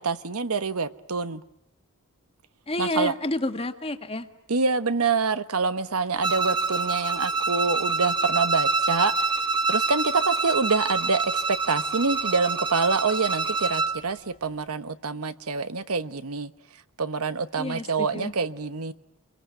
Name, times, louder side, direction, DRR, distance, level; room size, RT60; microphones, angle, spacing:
voice 1, 0.0-1.4 2.8-3.1 4.5-9.3 9.7-16.5 17.0-18.9, right 4 dB, 75° right, 1.1 m, -26 dB
voice 2, 2.7-4.3 17.6-18.3, left 1 dB, 25° left, 1.7 m, -29 dB
Bowed string instrument, 6.2-14.0, right 3 dB, 20° right, 2.2 m, -26 dB
28.0 x 23.0 x 9.3 m
head